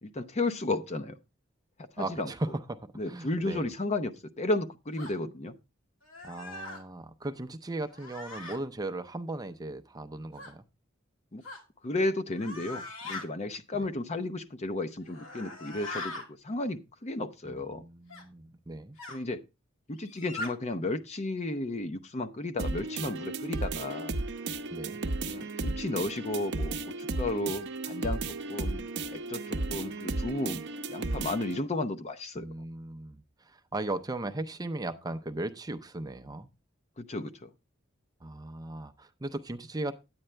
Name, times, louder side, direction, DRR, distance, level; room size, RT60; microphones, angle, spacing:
voice 1, 0.0-1.2 2.0-2.3 3.0-5.6 11.3-11.4 11.8-16.1 16.4-17.8 19.1-19.4 19.9-24.1 25.3-28.8 29.1-30.6 30.9-32.4 37.0-37.5, left 2 dB, 35° left, 0.7 m, -33 dB
voice 2, 2.0-2.8 3.1-3.7 6.2-10.6 17.5-19.0 24.7-25.0 32.4-36.5 38.2-39.9, right 2 dB, 20° right, 0.6 m, -37 dB
sound 1, 5.0-5.2 6.0-6.8 7.9-8.6 10.4-10.5 11.4-11.6 12.3-13.2 15.0-16.3 18.1-18.2 19.0-19.2 20.0-20.5, left 2 dB, 80° left, 2.3 m, -41 dB
sound 2, 22.6-31.6, right 2 dB, 60° right, 0.7 m, -34 dB
9.9 x 8.8 x 3.3 m
head